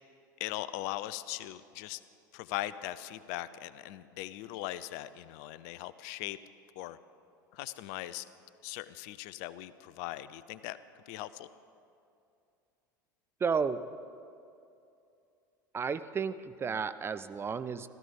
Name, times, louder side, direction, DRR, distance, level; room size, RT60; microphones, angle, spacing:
voice 1, 0.4-2.0 2.3-6.4 6.8-7.0 7.5-8.2 8.6-10.8 11.1-11.5, left 15 dB, 55° left, 16 dB, 0.5 m, -39 dB
voice 2, 13.4-13.8 15.7-17.9, right 6 dB, 20° right, 12 dB, 0.6 m, -32 dB
16.0 x 14.5 x 5.3 m, 2.6 s
figure-of-eight pair, 75°, 11 cm